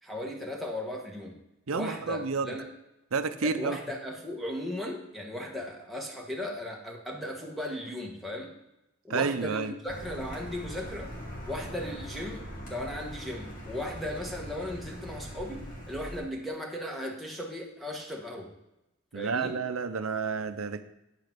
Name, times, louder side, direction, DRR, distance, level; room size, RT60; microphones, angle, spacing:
voice 1, 0.0-1.4 1.7-2.7 3.4-8.5 9.0-11.1 11.5-18.5 19.1-19.6, left 1 dB, ahead, -2 dB, 1.4 m, -37 dB
voice 2, 1.7-2.5 3.1-3.8 9.1-9.7 19.1-20.8, right 5 dB, 70° right, 11 dB, 0.7 m, -30 dB
Car, 9.9-16.2, equal, 40° left, 2.2 m, -41 dB
9.4 x 5.2 x 6.0 m, 0.91 s
head